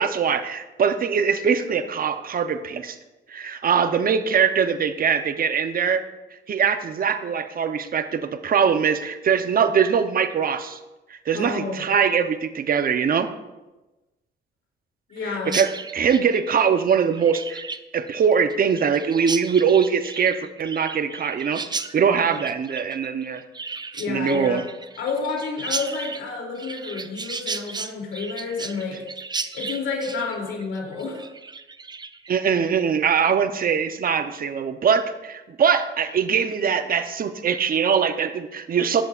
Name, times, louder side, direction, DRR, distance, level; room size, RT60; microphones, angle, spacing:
voice 1, 0.0-3.0 3.3-6.0 6.5-10.8 11.1-13.3 15.2-17.6 17.9-21.6 21.9-23.4 24.1-24.6 32.3-39.0, right 7 dB, 45° right, 10 dB, 0.9 m, -22 dB
voice 2, 11.3-11.8 15.1-15.6 22.3-22.4 24.0-24.6 25.0-29.0 29.5-31.2, left 4 dB, 80° left, 0 dB, 3.1 m, -30 dB
Chirp tweet, 15.4-32.3, right 4 dB, 20° right, 0.6 m, -35 dB
15.0 x 10.5 x 2.5 m, 1.0 s
cardioid pair, 90°, 20 cm